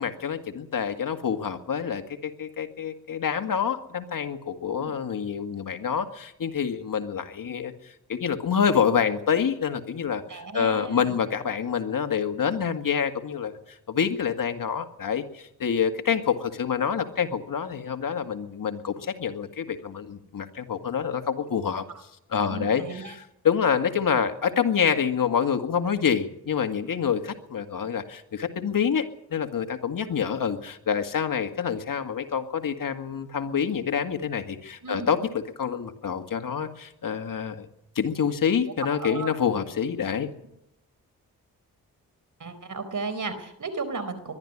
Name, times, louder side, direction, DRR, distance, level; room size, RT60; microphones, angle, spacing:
voice 1, 0.0-21.8 22.3-37.7 38.0-40.3, left 7 dB, 65° left, 7 dB, 2.0 m, -27 dB
voice 2, 10.3-11.1 22.5-23.2 34.8-35.1 38.9-39.4 42.4-44.3, right 4 dB, 55° right, 12 dB, 4.3 m, -34 dB
21.5 x 12.5 x 9.8 m, 0.81 s
cardioid pair, 60°, 36 cm